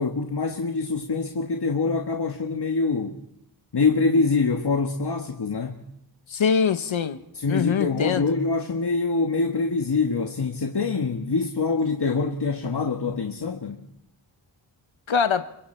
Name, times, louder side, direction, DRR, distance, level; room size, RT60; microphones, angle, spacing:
voice 1, 0.0-3.2 3.7-5.8 7.3-13.8, left 4 dB, 55° left, 1.6 m, -25 dB
voice 2, 6.3-7.2 7.5-8.2 15.1-15.5, left 6 dB, 80° left, 1.0 m, -23 dB
28.0 x 24.5 x 4.5 m
cardioid pair, 50°, 46 cm